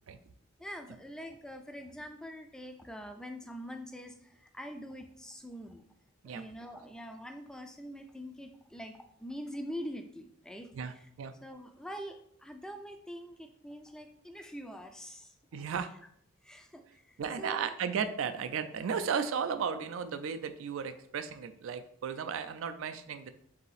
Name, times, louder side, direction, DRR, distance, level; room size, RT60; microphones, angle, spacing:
voice 1, 0.6-5.9 6.2-11.1 11.4-15.3 15.7-15.8 16.4-17.7, equal, 5° left, 5 dB, 0.3 m, -44 dB
voice 2, 10.7-11.3 15.5-15.9 17.2-23.3, right 6 dB, 75° right, 10 dB, 0.4 m, -35 dB
4.0 x 2.7 x 4.0 m, 0.68 s
head